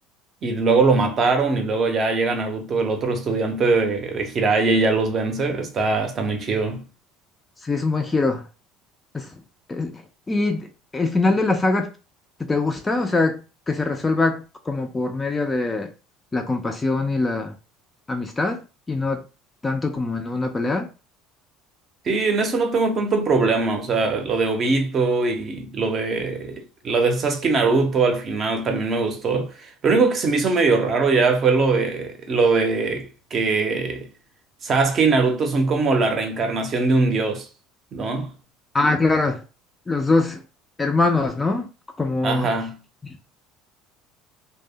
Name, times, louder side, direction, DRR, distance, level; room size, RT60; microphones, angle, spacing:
voice 1, 0.4-6.8 22.1-34.1 34.6-37.5 37.9-38.3 42.2-42.7, right 3 dB, 35° right, 0.6 m, -21 dB
voice 2, 7.6-8.4 9.1-9.3 9.7-10.0 10.3-11.9 12.4-15.9 16.3-17.5 18.1-18.6 18.9-19.2 19.6-20.9 38.7-39.4 39.9-40.4 40.8-41.7 42.0-42.5 43.0-43.2, left 3 dB, 15° left, 0.3 m, -23 dB
2.0 x 2.0 x 3.4 m
cardioid pair, 140°, 0 cm